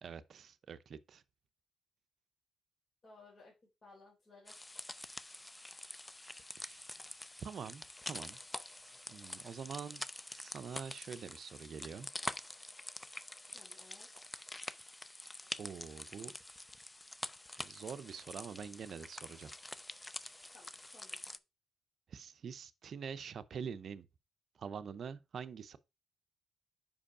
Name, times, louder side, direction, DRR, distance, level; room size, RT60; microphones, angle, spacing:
voice 1, 0.0-1.2 6.5-6.8 7.4-8.4 9.1-10.0 10.3-12.1 15.6-16.3 17.6-19.5 22.1-24.1 24.6-25.8, right 6 dB, 55° right, 0.6 m, -45 dB
voice 2, 3.0-3.5 3.8-4.6 13.5-14.5 20.5-21.2, left 3 dB, 35° left, 3.5 m, -60 dB
sound 1, 4.5-21.4, left 1 dB, 10° left, 0.4 m, -46 dB
5.4 x 5.1 x 4.9 m
cardioid pair, 90°, 0 cm